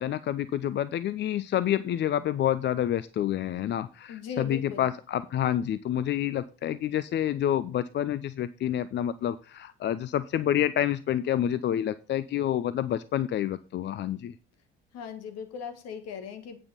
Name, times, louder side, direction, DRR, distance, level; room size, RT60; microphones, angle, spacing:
voice 1, 0.0-14.3, left 11 dB, 35° left, 15 dB, 0.5 m, -28 dB
voice 2, 4.1-4.9 14.9-16.6, left 6 dB, 55° left, 8 dB, 1.7 m, -39 dB
9.3 x 5.5 x 5.5 m, 0.37 s
figure-of-eight pair, 55°, 30 cm